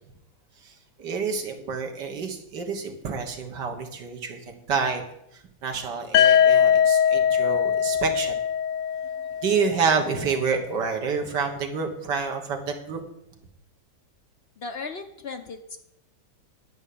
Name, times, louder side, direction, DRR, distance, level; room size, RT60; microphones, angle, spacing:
voice 1, 0.6-5.0 5.3-8.4 9.4-13.0, right 5 dB, 75° right, 3 dB, 2.1 m, -28 dB
sound 1, 6.1-10.0, left 8 dB, 80° left, 1.2 m, -21 dB
voice 2, 14.6-15.8, left 4 dB, 60° left, 6 dB, 0.6 m, -36 dB
10.5 x 5.4 x 8.5 m, 0.80 s
omnidirectional pair, 1.9 m